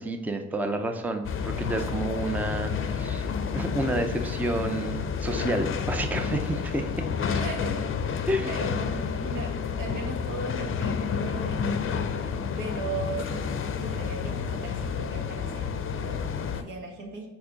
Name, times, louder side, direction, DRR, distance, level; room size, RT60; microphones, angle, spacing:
voice 1, 0.0-3.3 3.5-7.1 8.3-8.5, right 1 dB, 5° right, 6 dB, 0.5 m, -30 dB
sound 1, 1.2-16.6, left 6 dB, 45° left, 0.6 m, -30 dB
voice 2, 7.3-13.4 13.8-17.3, right 2 dB, 75° right, 0 dB, 1.5 m, -38 dB
4.7 x 4.6 x 5.0 m, 1.1 s
cardioid pair, 90°, 30 cm